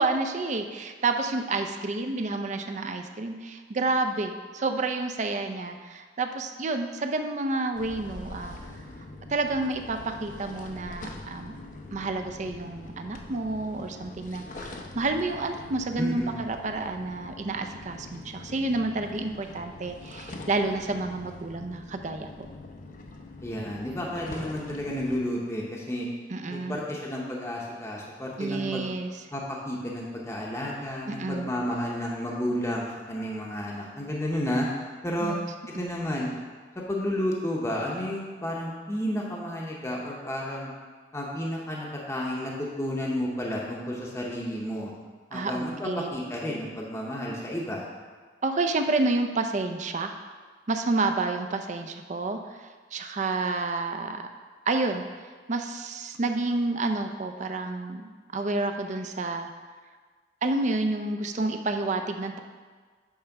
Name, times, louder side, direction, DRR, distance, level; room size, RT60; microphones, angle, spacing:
voice 1, 0.0-8.6 9.3-11.5 11.9-22.5 26.3-26.8 28.4-29.1 31.1-31.5 35.2-35.4 35.7-35.8 45.3-46.2 48.4-50.1 50.7-52.6 52.9-54.3 54.7-55.0 55.5-59.5 60.4-62.4, right 3 dB, 40° right, 6 dB, 0.5 m, -29 dB
sound 1, 7.7-25.2, left 2 dB, 45° left, 0.6 m, -43 dB
voice 2, 16.0-16.4 23.4-26.1 26.5-28.8 29.3-34.7 35.0-35.4 35.8-36.3 36.7-40.7 41.1-44.9 45.3-47.9, equal, 15° left, -3 dB, 0.8 m, -31 dB
8.7 x 3.4 x 5.9 m, 1.5 s
head